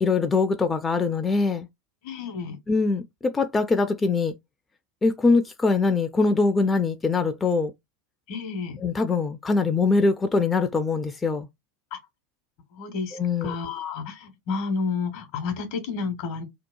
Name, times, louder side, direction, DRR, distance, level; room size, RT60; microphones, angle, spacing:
voice 1, 0.0-1.7 2.7-4.3 5.0-7.7 8.8-11.5 13.1-13.5, left 4 dB, 20° left, 0.3 m, -23 dB
voice 2, 2.0-2.6 8.3-8.8 11.9-12.0 12.7-16.4, left 5 dB, 60° left, 0.9 m, -31 dB
2.8 x 2.1 x 2.2 m
hypercardioid pair, 85°, 0 cm